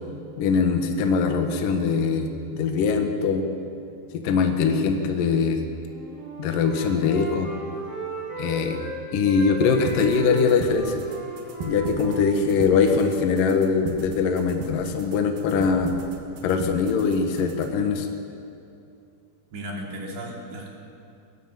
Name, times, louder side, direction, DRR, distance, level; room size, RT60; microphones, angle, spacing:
voice 1, 0.4-3.5 4.1-5.6 6.4-7.5 8.4-11.0 11.7-15.9 16.4-18.1, left 5 dB, 60° left, 4 dB, 2.8 m, -22 dB
Wind instrument woodwind instrument, 5.8-8.9 9.2-13.0, right 2 dB, 40° left, 7.5 m, -35 dB
sound 1, 9.9-17.9, right 3 dB, 60° right, 3.0 m, -37 dB
voice 2, 19.5-20.7, right 1 dB, 75° right, -1 dB, 5.3 m, -35 dB
22.0 x 20.0 x 7.5 m, 2.6 s
omnidirectional pair, 4.9 m